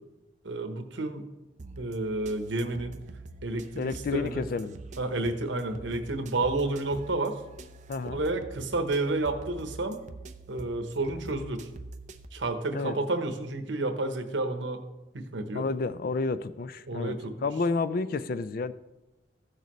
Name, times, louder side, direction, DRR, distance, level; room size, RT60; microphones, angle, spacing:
voice 1, 0.4-1.2 1.8-2.9 3.4-4.4 5.0-7.4 8.1-10.0 10.5-11.7 12.3-14.8 15.1-15.6 16.9-17.5, right 2 dB, 90° right, 7 dB, 1.0 m, -30 dB
sound 1, 1.6-12.3, right 2 dB, 40° right, 0.5 m, -45 dB
voice 2, 3.7-4.7 5.1-5.3 7.9-8.2 12.7-13.0 15.5-17.1 17.4-18.7, left 3 dB, 50° left, 13 dB, 0.4 m, -30 dB
14.5 x 6.6 x 3.1 m, 1.0 s
head